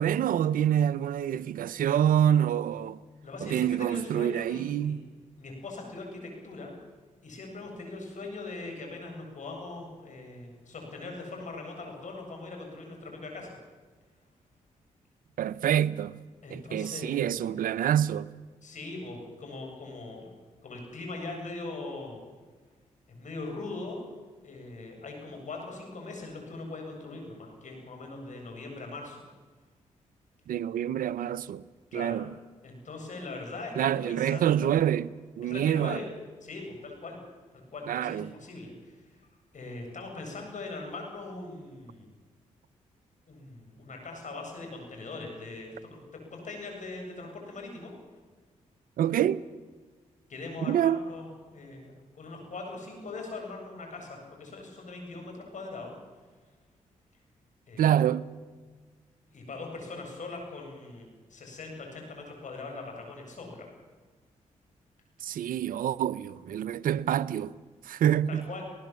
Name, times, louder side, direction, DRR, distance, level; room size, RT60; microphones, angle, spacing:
voice 1, 0.0-3.0 3.4-5.1 15.4-16.2 16.5-18.3 30.5-31.6 31.9-32.3 33.8-36.0 37.9-38.3 49.0-49.4 50.6-51.0 57.8-58.3 65.2-67.5 67.8-68.4, right 10 dB, 80° right, 0.7 m, -26 dB
voice 2, 3.2-5.0 5.4-6.7 7.2-13.5 16.4-17.3 18.6-20.3 20.6-22.2 23.1-24.0 24.4-29.2 31.9-32.2 32.6-34.7 35.4-36.0 36.4-37.2 37.5-39.0 39.5-42.1 43.3-47.9 50.3-55.9 57.7-58.0 59.3-63.7 68.3-68.6, left 3 dB, 60° left, 7.8 m, -41 dB
20.0 x 18.5 x 7.7 m
supercardioid pair, 55°, 14 cm